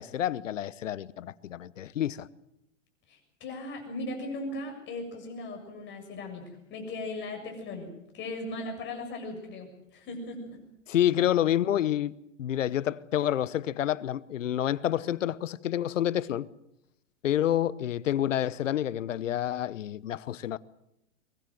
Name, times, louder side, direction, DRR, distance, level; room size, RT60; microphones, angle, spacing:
voice 1, 0.0-2.3 10.9-16.5 17.2-20.6, left 11 dB, 75° left, 1.0 m, -28 dB
voice 2, 3.1-6.4 6.7-9.7 9.9-10.7, left 2 dB, 30° left, 7.5 m, -38 dB
23.5 x 20.5 x 7.8 m
hypercardioid pair, 120°, 38 cm